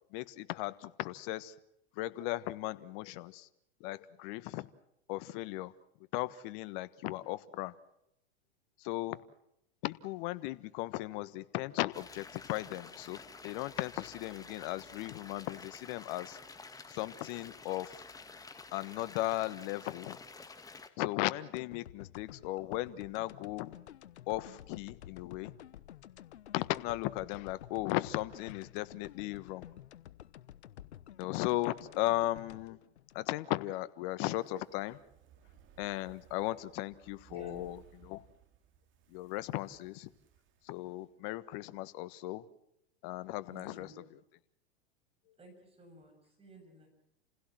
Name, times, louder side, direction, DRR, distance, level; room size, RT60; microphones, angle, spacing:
voice 1, 0.1-1.5 2.0-3.5 3.8-4.7 5.1-5.7 6.1-7.7 8.8-9.2 9.8-13.2 13.4-16.4 16.9-18.0 18.7-20.2 21.0-23.7 24.3-25.5 26.5-29.7 31.1-32.8 33.1-35.0 35.8-37.8 38.1-38.2 39.1-40.1 40.6-42.4 43.0-44.2, left 17 dB, 50° left, 14 dB, 1.5 m, -36 dB
sound 1, 11.9-20.9, left 4 dB, 10° left, 1.8 m, -50 dB
sound 2, 21.6-33.8 34.2-34.3, left 11 dB, 85° left, 1.1 m, -52 dB
Fire, 34.0-41.4 41.7-41.8, right 10 dB, 35° right, 2.6 m, -63 dB
voice 2, 37.3-37.7 43.5-44.0 45.4-46.9, right 1 dB, 15° right, 3 dB, 7.4 m, -53 dB
29.5 x 16.5 x 7.8 m, 0.81 s
hypercardioid pair, 115°, 33 cm